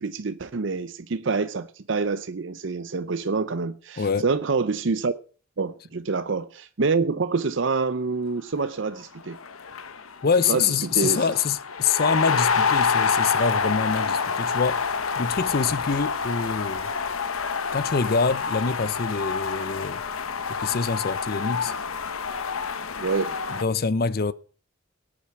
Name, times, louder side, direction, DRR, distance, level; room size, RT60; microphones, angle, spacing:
voice 1, 0.0-5.1 5.6-9.4 10.5-11.2 23.0-23.3, right 4 dB, 60° right, 0.6 m, -26 dB
voice 2, 4.0-4.3 10.2-14.8 15.2-16.9 17.7-20.0 20.6-21.7 23.5-24.3, left 5 dB, 45° left, 0.5 m, -25 dB
sound 1, 9.0-9.1 9.3-23.6, left 5 dB, 90° left, 1.0 m, -27 dB
18.0 x 8.7 x 6.1 m
head